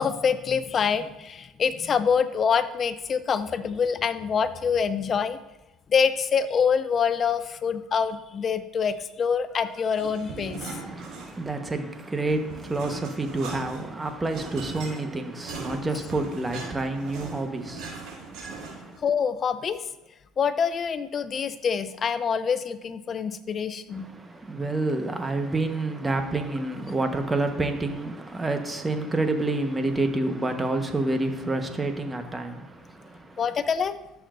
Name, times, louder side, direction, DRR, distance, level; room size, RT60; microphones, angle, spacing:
voice 1, 0.0-5.4 5.9-10.6 19.0-19.9 20.4-24.1 33.4-34.0, left 6 dB, 40° left, 0.6 m, -25 dB
sound 1, 9.9-11.6 11.9-19.0, right 4 dB, 70° right, 3.4 m, -39 dB
voice 2, 10.7-19.0 23.9-33.4, right 2 dB, 20° right, 1.2 m, -29 dB
13.0 x 6.9 x 2.6 m
supercardioid pair, 90°, 0 cm